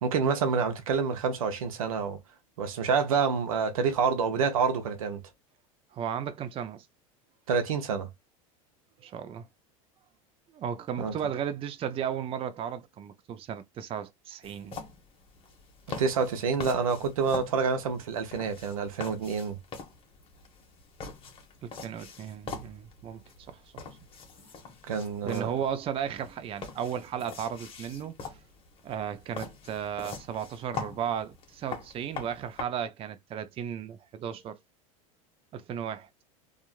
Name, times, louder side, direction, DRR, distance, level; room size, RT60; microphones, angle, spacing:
voice 1, 0.0-2.2 2.6-5.2 7.5-8.1 11.0-11.1 16.0-19.6 24.9-25.5, right 5 dB, 90° right, 0.7 m, -27 dB
voice 2, 5.9-6.9 9.0-9.5 10.5-14.8 21.6-23.2 23.5-23.8 25.2-28.2 28.8-34.6 35.5-36.1, right 8 dB, 35° right, 0.5 m, -35 dB
sound 1, 14.4-32.6, left 5 dB, 35° left, 1.0 m, -44 dB
2.8 x 2.4 x 2.4 m
supercardioid pair, 105°, 17 cm